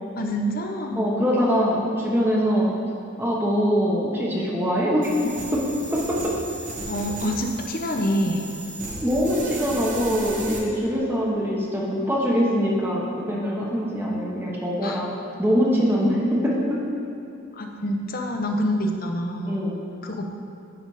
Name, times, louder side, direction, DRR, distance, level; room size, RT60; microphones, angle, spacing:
voice 1, 0.2-1.1 6.8-8.5 14.8-15.0 17.5-19.6 20.0-20.3, equal, 50° left, 3 dB, 0.7 m, -26 dB
voice 2, 1.0-2.7 3.2-5.6 5.9-6.3 9.0-15.1 15.4-16.8 19.5-19.8, equal, 10° right, -4 dB, 0.9 m, -23 dB
sound 1, 5.0-10.6, right 2 dB, 40° right, 1.1 m, -35 dB
10.5 x 4.0 x 4.9 m, 2.6 s
head